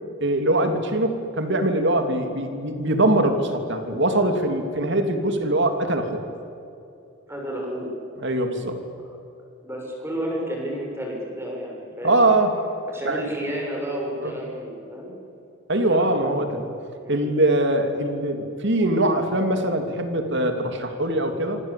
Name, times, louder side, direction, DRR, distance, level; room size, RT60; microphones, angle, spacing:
voice 1, 0.2-6.2 8.2-8.8 12.0-12.5 13.0-13.3 14.2-14.3 15.7-16.7 17.1-21.6, right 1 dB, 55° right, 6 dB, 3.1 m, -22 dB
voice 2, 7.3-7.9 9.6-12.2 12.9-15.1 15.9-16.3 17.0-17.2, equal, 10° right, -1 dB, 6.8 m, -31 dB
26.5 x 26.0 x 8.5 m, 2.7 s
head